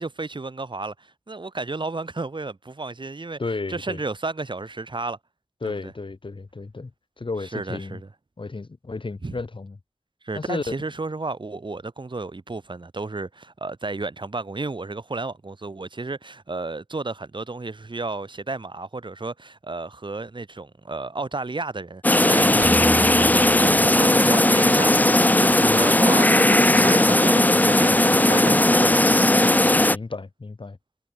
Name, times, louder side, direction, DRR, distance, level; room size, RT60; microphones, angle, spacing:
voice 1, 0.0-3.4 3.7-5.2 5.6-5.9 7.5-8.1 9.2-9.4 10.2-23.3 23.6-29.3, right 3 dB, 65° right, 3.5 m, -32 dB
voice 2, 3.4-4.0 5.6-6.9 7.2-8.0 8.4-9.7 10.3-10.6 22.4-22.7 25.6-25.8 29.9-30.8, left 3 dB, 80° left, 6.6 m, -33 dB
sound 1, 22.0-30.0, left 1 dB, 20° left, 0.6 m, -17 dB
sound 2, 22.6-24.9, right 1 dB, 20° right, 4.9 m, -34 dB
wide cardioid pair, 55°, 9 cm